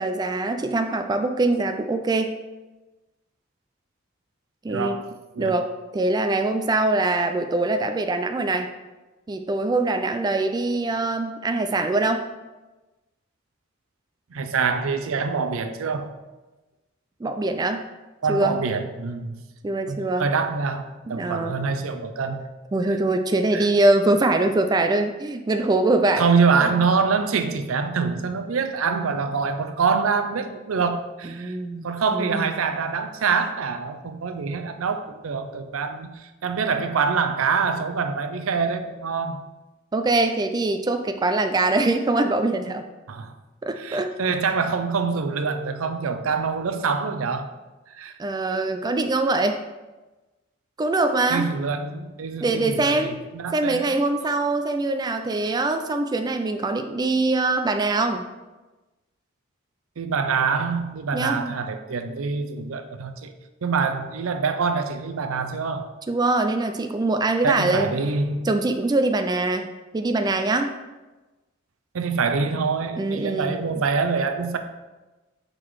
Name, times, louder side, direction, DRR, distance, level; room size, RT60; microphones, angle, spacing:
voice 1, 0.0-2.3 4.6-5.0 5.4-8.7 9.3-12.3 17.2-17.9 18.3-18.6 19.6-20.3 21.1-21.7 22.7-26.3 31.2-32.5 39.9-42.9 43.6-44.1 48.2-49.6 50.8-51.5 52.4-53.2 53.5-58.2 61.1-61.5 66.1-67.9 68.4-70.7 73.0-73.6, right 2 dB, 20° right, 7 dB, 0.3 m, -23 dB
voice 2, 4.7-5.6 14.3-16.1 18.2-19.4 19.9-22.5 22.9-23.0 23.5-23.7 26.2-31.6 31.8-39.4 43.1-43.3 43.8-47.5 47.9-48.1 51.3-53.9 60.0-63.3 63.6-65.9 67.4-68.5 71.9-74.6, right 5 dB, 85° right, 8 dB, 0.5 m, -25 dB
6.5 x 3.8 x 4.6 m, 1.1 s
head